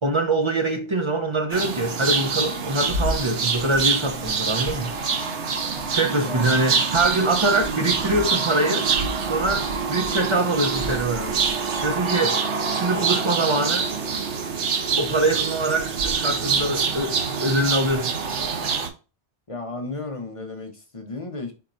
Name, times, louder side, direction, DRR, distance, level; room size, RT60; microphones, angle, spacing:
voice 1, 0.0-4.9 5.9-8.9 9.3-11.4 11.8-12.4 12.7-13.9 15.0-18.1, right 2 dB, 35° right, 0.5 m, -24 dB
sound 1, 1.5-18.9, right 5 dB, 90° right, 1.2 m, -25 dB
voice 2, 19.5-21.5, left 3 dB, 30° left, 0.8 m, -34 dB
4.6 x 4.3 x 2.5 m
omnidirectional pair, 1.2 m